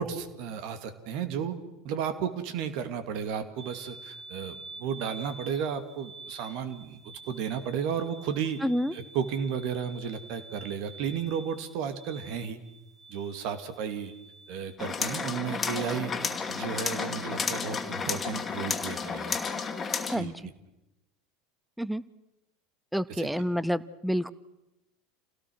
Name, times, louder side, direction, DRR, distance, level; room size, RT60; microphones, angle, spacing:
voice 1, 0.0-1.6 1.8-8.6 8.9-12.6 13.1-14.1 14.5-16.1 16.5-19.4 20.1-20.3 23.1-23.3, right 7 dB, 60° right, 10 dB, 2.3 m, -33 dB
sound 1, 3.6-14.8, right 3 dB, 35° right, 3.7 m, -48 dB
voice 2, 8.6-8.9 20.1-20.3 21.8-22.0 22.9-24.3, equal, ahead, 18 dB, 0.8 m, -28 dB
sound 2, 14.8-20.2, left 5 dB, 25° left, 2.5 m, -32 dB
28.0 x 17.5 x 6.3 m, 0.93 s
hypercardioid pair, 85°, 0 cm